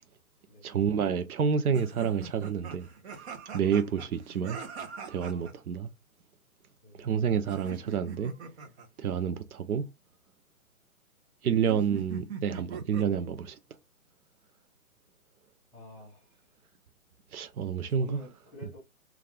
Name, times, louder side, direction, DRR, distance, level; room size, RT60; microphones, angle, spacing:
voice 1, 0.6-2.9 3.5-4.6 5.1-5.9 7.0-8.3 9.0-9.9 11.4-13.6 17.3-18.2, right 7 dB, 85° right, 0.6 m, -29 dB
sound 1, 1.7-5.5 7.5-8.9 11.7-13.2, right 5 dB, 50° right, 0.7 m, -42 dB
voice 2, 15.7-16.4 17.9-18.8, left 1 dB, 5° left, 1.0 m, -49 dB
2.4 x 2.3 x 3.3 m
hypercardioid pair, 145°, 43 cm